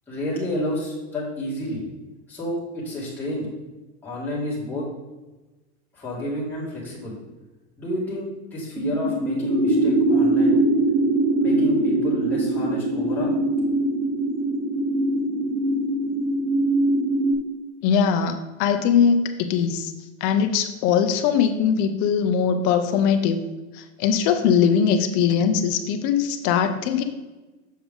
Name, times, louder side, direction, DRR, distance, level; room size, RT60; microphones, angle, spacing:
voice 1, 0.1-1.8 2.3-3.5 4.0-4.9 5.9-7.2 7.8-10.6 11.4-13.3, equal, 5° left, -8 dB, 2.1 m, -30 dB
sound 1, 8.8-17.3, right 2 dB, 35° right, 1.1 m, -22 dB
voice 2, 17.8-19.9 20.2-23.4 23.7-27.0, left 7 dB, 25° left, 7 dB, 0.4 m, -21 dB
7.1 x 6.0 x 3.6 m, 1.1 s
supercardioid pair, 165°, 36 cm